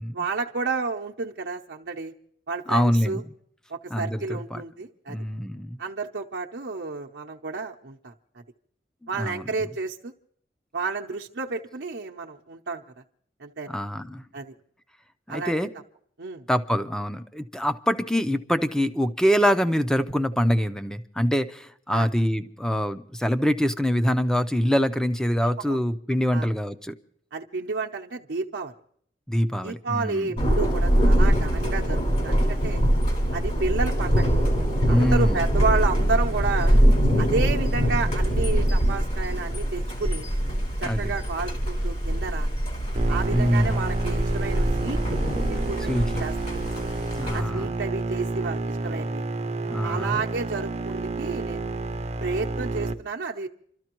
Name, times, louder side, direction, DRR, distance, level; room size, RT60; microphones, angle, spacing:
voice 1, 0.1-2.1 2.5-3.2 3.7-5.2 5.8-8.1 9.1-10.1 10.7-12.8 13.4-13.8 14.3-14.5 15.3-15.7 16.2-16.4 21.9-22.1 25.6-25.8 26.3-26.5 27.3-28.7 29.6-32.8 33.3-34.3 34.9-36.8 37.2-40.3 40.8-42.5 43.1-45.2 45.5-46.6 47.3-49.2 49.8-51.6 52.2-53.5, right 4 dB, 80° right, 0 dB, 0.8 m, -31 dB
voice 2, 2.7-3.2 3.9-4.6 5.1-5.8 9.2-9.4 13.7-14.2 15.3-15.7 16.5-26.9 29.3-30.3 34.9-35.4 40.8-41.1 43.3-43.8 45.9-46.2 47.2-47.7 49.7-50.2, equal, 5° left, 10 dB, 0.6 m, -24 dB
Thunder, 30.4-47.4, equal, 45° left, 3.6 m, -23 dB
sound 1, 43.0-52.9, right 2 dB, 40° right, 0.7 m, -30 dB
28.5 x 13.0 x 3.0 m, 0.63 s
head